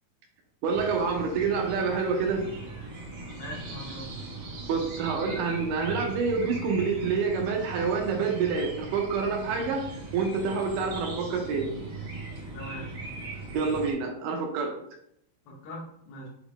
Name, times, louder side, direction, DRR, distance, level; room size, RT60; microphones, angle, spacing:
sound 1, 0.6-13.9, right 2 dB, 60° right, 2.0 m, -39 dB
voice 1, 0.6-2.4 4.7-9.8 10.1-11.7 13.5-14.7, right 5 dB, 80° right, 2 dB, 2.1 m, -27 dB
voice 2, 3.3-4.2 12.5-12.9 15.5-16.3, equal, 80° left, -2 dB, 2.7 m, -41 dB
6.3 x 2.4 x 3.5 m, 0.75 s
omnidirectional pair, 4.1 m